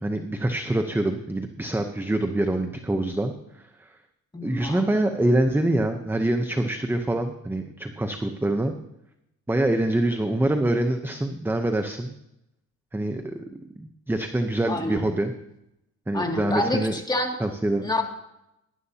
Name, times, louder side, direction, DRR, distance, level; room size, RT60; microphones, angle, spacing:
voice 1, 0.0-4.0 4.4-8.7 9.5-12.1 12.9-13.4 13.8-15.3 16.1-17.0 17.4-17.9, right 1 dB, 5° right, 6 dB, 0.8 m, -25 dB
voice 2, 4.3-4.8 14.7-15.0 16.1-17.4 17.8-18.0, left 1 dB, 15° left, 2 dB, 2.3 m, -27 dB
18.0 x 11.0 x 2.8 m, 0.85 s
cardioid pair, 90°, 30 cm